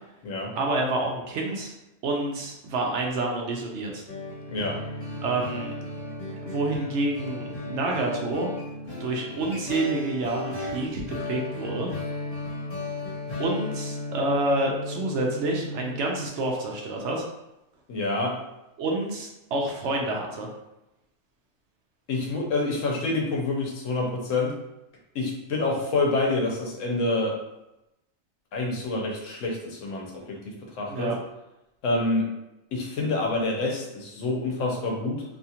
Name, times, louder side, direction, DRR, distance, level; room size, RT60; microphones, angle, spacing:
voice 1, 0.5-1.7 2.0-4.0 5.2-5.7 6.4-8.5 9.0-11.9 13.4-17.3 18.8-20.5 30.9-31.2, right 2 dB, 70° right, 0 dB, 0.8 m, -28 dB
sound 1, 4.1-16.3, left 2 dB, 55° left, 1.2 m, -35 dB
voice 2, 4.5-4.8 17.9-18.4 22.1-24.5 25.1-27.4 28.5-31.1 31.8-32.3 32.7-35.2, left 2 dB, 75° left, -1 dB, 1.1 m, -27 dB
2.7 x 2.4 x 2.7 m, 0.92 s
omnidirectional pair, 1.3 m